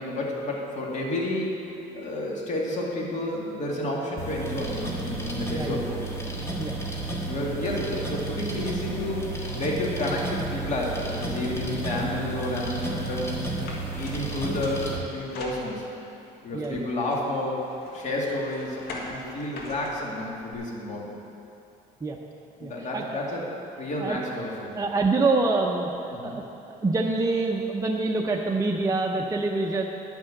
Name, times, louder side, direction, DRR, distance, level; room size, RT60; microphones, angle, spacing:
voice 1, 0.0-6.1 7.3-13.5 14.0-15.9 16.4-17.6 17.9-21.0 22.6-23.4 23.8-24.7 26.1-26.4, left 1 dB, 45° left, -3 dB, 2.3 m, -30 dB
sound 1, 4.2-15.0, right 2 dB, 15° left, 1.7 m, -32 dB
voice 2, 5.5-5.9 6.6-6.8 16.5-16.9 22.0-22.2 22.6-23.2 24.0-24.2 24.7-25.9 26.2-29.9, right 3 dB, 20° right, 0 dB, 0.7 m, -26 dB
sound 2, 12.8-16.1 16.6-20.5, left 2 dB, 80° left, 1.7 m, -43 dB
10.5 x 6.2 x 7.7 m, 2.8 s
cardioid pair, 110°, 17 cm